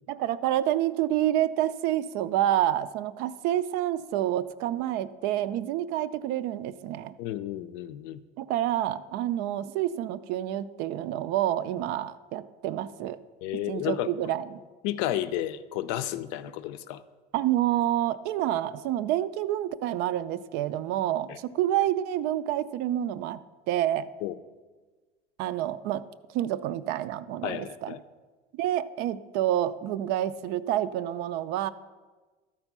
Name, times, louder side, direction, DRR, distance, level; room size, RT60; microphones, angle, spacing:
voice 1, 0.1-7.1 8.4-13.2 13.5-14.6 17.3-23.4 23.7-24.1 25.4-26.0 26.3-27.9 28.5-31.7, right 12 dB, 60° right, 15 dB, 0.4 m, -28 dB
voice 2, 7.2-8.2 13.4-14.1 14.8-17.0 21.3-21.4 24.2-24.4 27.4-28.0, left 13 dB, 75° left, 13 dB, 0.5 m, -32 dB
13.0 x 4.5 x 5.9 m, 1.3 s
cardioid pair, 165°, 19 cm